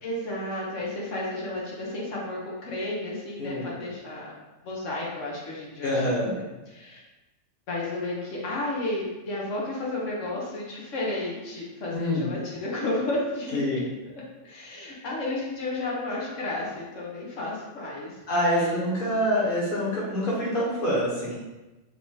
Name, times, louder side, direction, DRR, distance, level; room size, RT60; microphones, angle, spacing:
voice 1, 0.0-4.3 4.6-7.0 7.7-13.8 14.4-18.9, left 2 dB, 75° left, -4 dB, 1.4 m, -32 dB
voice 2, 3.4-3.7 5.8-6.4 11.9-12.3 13.5-13.8 18.3-21.4, equal, 45° left, -7 dB, 1.5 m, -26 dB
3.7 x 3.6 x 3.9 m, 1.1 s
omnidirectional pair, 1.3 m